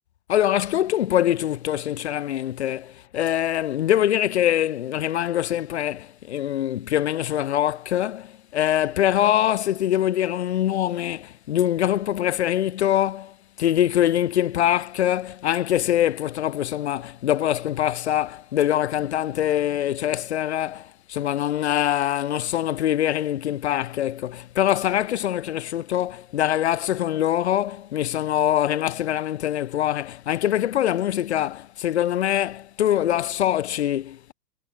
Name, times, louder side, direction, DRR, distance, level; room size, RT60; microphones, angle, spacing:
voice 1, 0.3-34.3, left 11 dB, 40° left, 4.2 m, -24 dB
hypercardioid pair, 175°, 48 cm